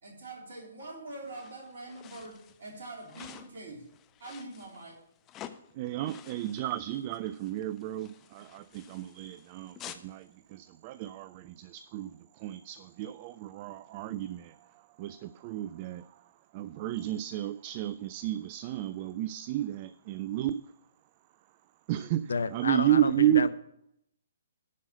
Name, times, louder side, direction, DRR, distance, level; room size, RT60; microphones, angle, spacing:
voice 1, 0.0-3.8 4.2-5.0, right 2 dB, 55° right, 0 dB, 3.2 m, -44 dB
sound 1, 1.2-10.1, left 10 dB, 20° left, 0.6 m, -51 dB
voice 2, 5.8-14.6 15.0-16.1 16.5-20.6 21.9-23.5, right 12 dB, 35° right, 17 dB, 0.3 m, -32 dB
voice 3, 22.3-23.5, left 4 dB, 65° left, 14 dB, 0.7 m, -31 dB
11.5 x 5.5 x 6.6 m, 0.75 s
figure-of-eight pair, 125°, 0 cm